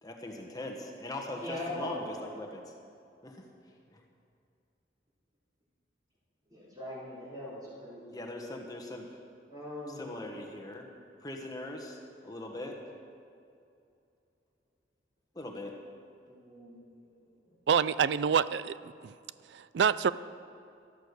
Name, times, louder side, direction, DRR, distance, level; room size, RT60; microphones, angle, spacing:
voice 1, 0.0-2.7 3.2-3.4 3.9-4.0 8.1-9.1 9.9-10.9 11.2-12.8 15.3-15.8, left 1 dB, 20° left, 1 dB, 1.3 m, -41 dB
voice 2, 1.4-2.2 6.5-8.2 9.5-10.0 16.3-17.2, left 1 dB, 25° right, -13 dB, 3.7 m, -41 dB
voice 3, 17.7-18.8 19.0-19.1 19.5-20.1, right 7 dB, 75° right, 17 dB, 0.4 m, -26 dB
13.0 x 11.5 x 6.7 m, 2.5 s
head